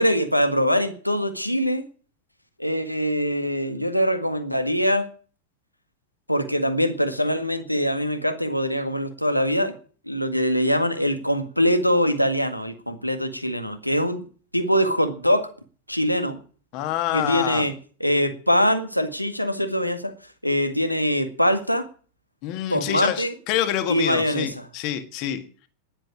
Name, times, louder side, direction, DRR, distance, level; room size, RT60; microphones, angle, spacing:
voice 1, 0.0-1.8 2.6-5.1 6.3-9.7 10.1-14.2 14.5-15.5 15.9-16.4 17.1-17.7 18.0-20.1 20.4-21.9 22.7-23.3 23.9-24.7, equal, 90° left, 1.8 m, -23 dB
voice 2, 16.7-17.7 22.4-25.5, left 12 dB, 40° left, 1.7 m, -27 dB
11.0 x 10.0 x 9.9 m
figure-of-eight pair, 90°, 0 cm